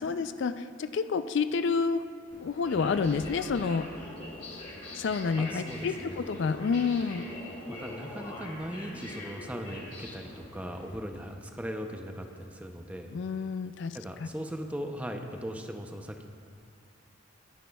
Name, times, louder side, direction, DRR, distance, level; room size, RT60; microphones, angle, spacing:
voice 1, 0.0-2.0 2.4-3.9 5.0-7.2 13.1-14.3, left 5 dB, 60° left, 11 dB, 0.3 m, -29 dB
sound 1, 2.3-11.0, left 1 dB, 35° left, 2.6 m, -43 dB
voice 2, 5.4-6.3 7.7-13.1 13.9-16.3, equal, 5° right, 4 dB, 0.6 m, -39 dB
19.5 x 10.5 x 2.3 m, 2.3 s
head